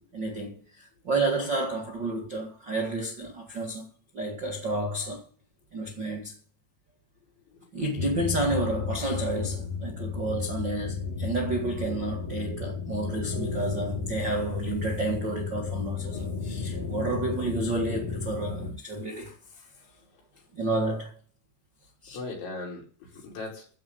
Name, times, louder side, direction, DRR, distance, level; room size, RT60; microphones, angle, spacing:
voice 1, 0.1-5.2 5.7-6.3 7.7-19.7 20.5-21.1 22.0-22.2, right 2 dB, 65° right, 1.1 m, -31 dB
voice 2, 7.5-7.9 12.6-12.8 19.8-20.5 22.1-23.8, left 3 dB, 70° left, 7.1 m, -41 dB
sound 1, 8.0-18.7, left 5 dB, 40° left, 4.5 m, -33 dB
15.0 x 5.2 x 8.7 m
omnidirectional pair, 5.6 m